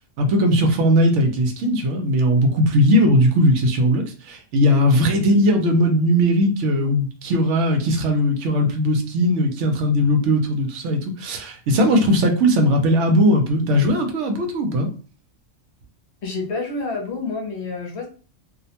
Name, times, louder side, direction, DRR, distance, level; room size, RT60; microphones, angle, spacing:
voice 1, 0.2-14.9, equal, 70° right, 0.9 m, -18 dB
voice 2, 16.2-18.1, left 3 dB, 65° left, 0.9 m, -28 dB
2.5 x 2.1 x 2.7 m
omnidirectional pair, 1.3 m